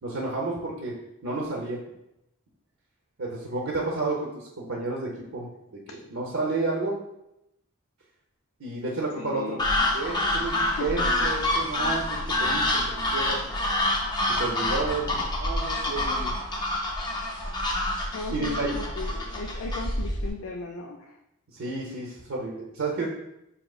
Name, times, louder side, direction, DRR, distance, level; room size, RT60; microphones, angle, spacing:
voice 1, 0.0-1.0 1.2-1.8 3.2-5.8 6.1-7.0 8.6-13.4 13.7-13.8 14.4-16.3 18.3-18.8 21.5-23.1, right 3 dB, 75° right, -3 dB, 0.7 m, -31 dB
voice 2, 9.1-9.7 10.5-10.9 12.3-12.6 18.1-21.2, left 3 dB, 80° left, 2 dB, 0.4 m, -37 dB
sound 1, 9.6-20.3, left 1 dB, 20° left, 0.5 m, -27 dB
4.9 x 2.9 x 2.3 m, 0.85 s
head